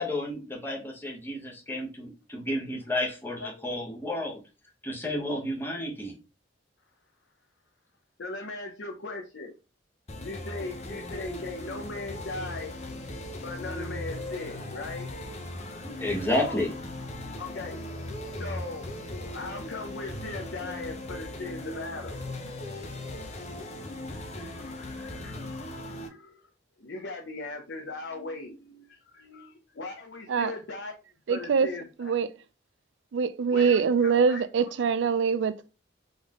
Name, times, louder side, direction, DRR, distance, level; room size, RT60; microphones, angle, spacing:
voice 1, 0.0-4.4 4.8-6.2 15.8-16.7, left 1 dB, 10° left, 1.2 m, -31 dB
voice 2, 3.4-3.8 4.1-4.2 8.2-9.5 10.2-12.8 13.4-15.1 16.3-16.6 17.4-17.8 18.4-18.9 19.2-22.3 24.3-24.5 24.8-25.4 25.9-26.4 26.8-31.0 31.3-31.9 33.5-34.7, left 3 dB, 75° left, 0.7 m, -39 dB
sound 1, 10.1-26.1, left 1 dB, 35° left, 0.8 m, -38 dB
voice 3, 31.3-31.7 32.0-32.3 33.1-35.7, right 6 dB, 80° right, 0.4 m, -24 dB
3.9 x 3.5 x 3.6 m
head